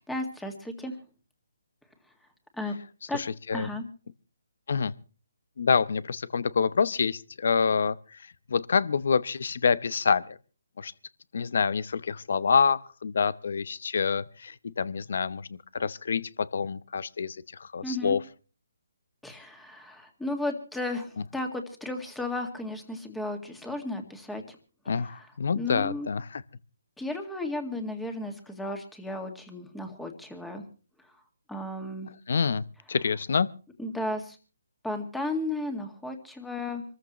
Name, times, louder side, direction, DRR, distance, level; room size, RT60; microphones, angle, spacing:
voice 1, 0.1-0.9 2.6-2.8 3.1-3.2 3.5-3.8 17.8-18.2 19.2-24.4 25.6-26.1 27.0-30.6 31.5-32.1 33.8-34.4 34.8-36.8, left 1 dB, 5° left, 5 dB, 2.0 m, -34 dB
voice 2, 3.1-3.7 4.7-4.9 5.6-8.2 8.5-10.4 10.8-10.9 11.3-18.2 24.9-26.4 32.3-33.5, left 5 dB, 65° left, 18 dB, 0.8 m, -27 dB
26.0 x 14.0 x 3.1 m, 0.37 s
hypercardioid pair, 155°, 0 cm